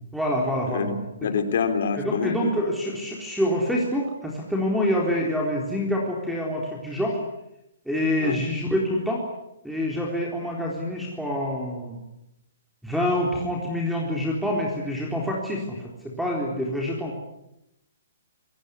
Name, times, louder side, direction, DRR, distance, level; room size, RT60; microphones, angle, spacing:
voice 1, 0.1-0.9 2.0-7.2 7.9-9.2 9.6-12.0 12.8-15.8 16.0-17.1, equal, ahead, -2 dB, 3.8 m, -26 dB
voice 2, 0.7-2.5 8.2-8.4, left 6 dB, 60° left, 8 dB, 3.5 m, -26 dB
26.5 x 18.5 x 9.8 m, 0.87 s
hypercardioid pair, 160°, 0 cm